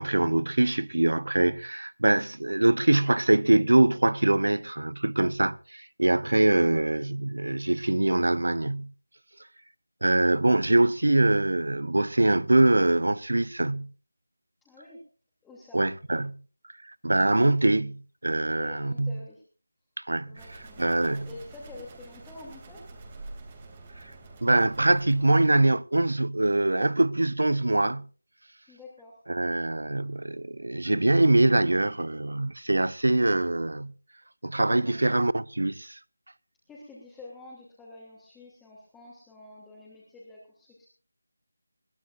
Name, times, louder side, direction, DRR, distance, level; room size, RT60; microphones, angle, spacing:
voice 1, 0.0-8.9 10.0-13.9 15.7-16.4 16.8-19.2 20.1-20.3 20.8-21.3 24.4-28.1 29.3-33.9 34.4-36.0, right 2 dB, 80° right, 0.7 m, -23 dB
voice 2, 14.6-15.0 15.4-15.9 18.5-19.4 20.3-22.8 28.7-29.2 34.8-35.0 36.7-40.9, left 2 dB, 5° left, 2.9 m, -47 dB
sound 1, 20.3-25.4, right 2 dB, 20° right, 2.8 m, -46 dB
22.0 x 16.0 x 2.6 m
figure-of-eight pair, 170°, 0 cm